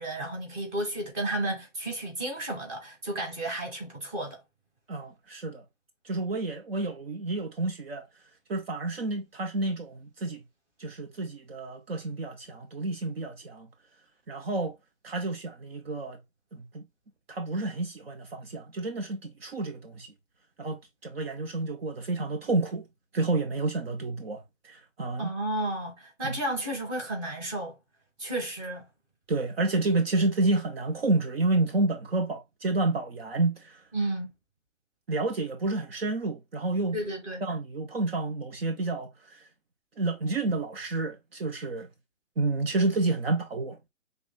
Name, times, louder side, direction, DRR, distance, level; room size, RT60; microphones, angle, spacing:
voice 1, 0.0-4.4 25.2-27.7 28.2-28.8 33.9-34.3 36.9-37.5, right 1 dB, 15° right, 1.6 m, -32 dB
voice 2, 4.9-5.6 6.0-8.1 8.5-10.4 10.8-13.7 14.3-14.8 15.0-16.2 16.5-16.9 17.3-20.1 20.6-22.8 23.1-25.3 26.2-26.4 29.3-33.8 35.1-37.0 37.4-39.4 40.0-41.9 42.4-43.8, right 2 dB, 50° right, 1.1 m, -29 dB
6.0 x 3.5 x 2.2 m
hypercardioid pair, 155°, 38 cm